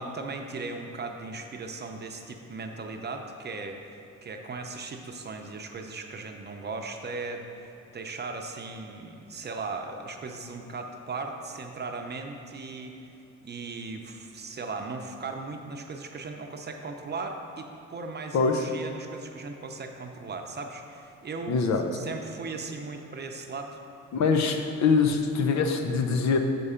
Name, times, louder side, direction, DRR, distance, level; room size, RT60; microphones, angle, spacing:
voice 1, 0.0-3.8 4.2-13.0 13.4-21.6 21.9-23.8, right 3 dB, 35° right, 4 dB, 0.7 m, -37 dB
voice 2, 18.3-18.7 21.5-21.8 24.1-26.4, left 5 dB, 65° left, 5 dB, 0.8 m, -24 dB
6.9 x 4.9 x 5.6 m, 2.8 s
cardioid pair, 90°, 30 cm